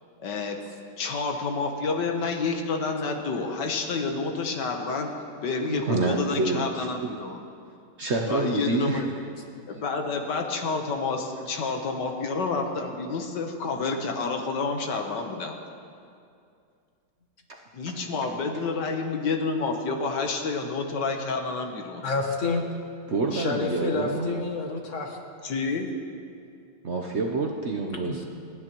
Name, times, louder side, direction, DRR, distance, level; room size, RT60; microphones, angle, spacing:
voice 1, 0.2-0.6 1.0-5.1 5.4-7.4 8.3-9.1 9.7-15.5 17.7-22.0 25.4-25.9, left 4 dB, 80° left, 4 dB, 1.7 m, -29 dB
voice 2, 5.7-6.9 8.0-9.0 9.7-9.8 23.1-24.4 26.8-28.2, right 3 dB, 50° right, 1 dB, 0.9 m, -27 dB
voice 3, 22.0-22.6 23.3-25.2 25.5-25.6 28.0-28.2, left 4 dB, 50° left, 2 dB, 1.5 m, -29 dB
29.0 x 9.7 x 3.0 m, 2.4 s
omnidirectional pair, 1.9 m